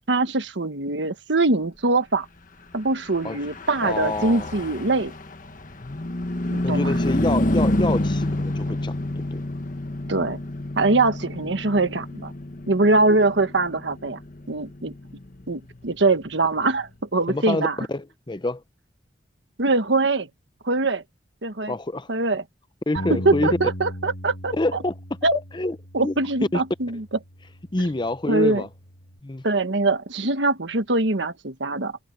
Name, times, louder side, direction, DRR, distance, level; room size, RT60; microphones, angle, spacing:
voice 1, 0.1-2.3 2.7-5.1 6.5-6.9 10.1-10.4 10.8-12.3 12.7-14.2 14.5-14.9 15.5-17.7 19.6-20.3 20.6-21.0 21.4-21.7 22.1-22.4 23.1-24.5 25.2-25.4 25.9-27.0 28.3-28.6 29.4-32.0, right 2 dB, 85° right, 1.4 m, -22 dB
Car passing by / Truck, 3.1-16.8, left 1 dB, 50° left, 1.4 m, -29 dB
voice 2, 3.8-4.5 6.6-9.0 9.3-9.4 17.3-18.6 21.7-22.1 22.9-23.5 24.5-24.9 25.3-26.1 26.5-26.6 27.7-28.7 29.2-29.4, left 2 dB, 25° left, 0.7 m, -27 dB
Bass guitar, 23.0-29.2, equal, 70° left, 2.1 m, -38 dB
head